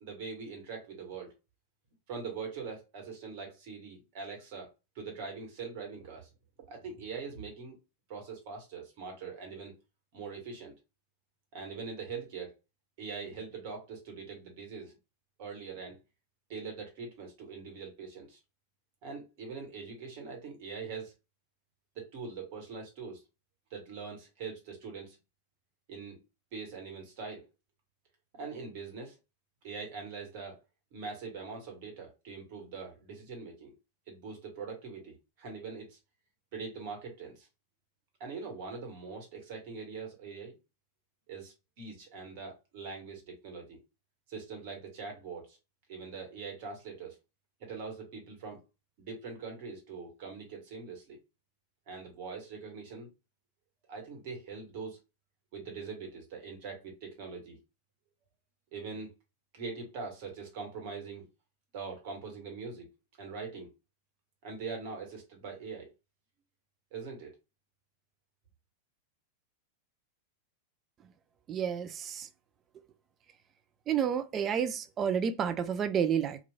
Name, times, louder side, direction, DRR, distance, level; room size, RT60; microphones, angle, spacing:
voice 1, 0.0-1.3 2.1-4.7 4.9-6.3 6.6-7.8 8.1-9.7 10.1-10.8 11.5-12.5 13.0-14.9 15.4-16.0 16.5-18.4 19.0-21.1 21.9-23.2 23.7-25.2 25.9-26.2 26.5-27.5 28.3-29.2 29.6-30.6 30.9-33.7 34.1-36.0 36.5-37.5 38.2-40.5 41.3-43.8 44.3-45.6 45.9-47.2 47.6-48.6 49.0-51.2 51.9-53.1 53.9-55.0 55.5-57.6 58.7-59.1 59.5-61.2 61.7-62.9 63.2-63.7 64.4-65.9 66.9-67.3, right 5 dB, 45° right, 1.2 m, -42 dB
voice 2, 71.5-72.3 73.9-76.4, right 8 dB, 30° right, 0.3 m, -30 dB
3.0 x 2.4 x 2.2 m
figure-of-eight pair, 90°, 0 cm